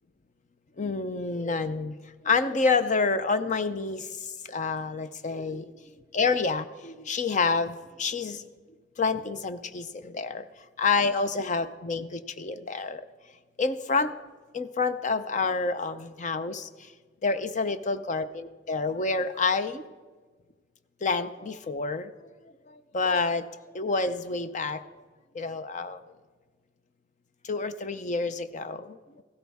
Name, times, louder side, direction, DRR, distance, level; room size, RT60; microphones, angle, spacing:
voice 1, 0.8-2.0 2.2-5.7 6.1-8.4 9.0-10.4 10.8-13.0 13.6-14.1 14.5-16.9 17.2-18.3 18.7-19.8 21.0-22.1 22.7-23.5 23.7-24.8 25.3-26.0 27.4-29.2, left 4 dB, 40° left, 11 dB, 0.6 m, -28 dB
15.5 x 13.5 x 3.5 m, 1.4 s
head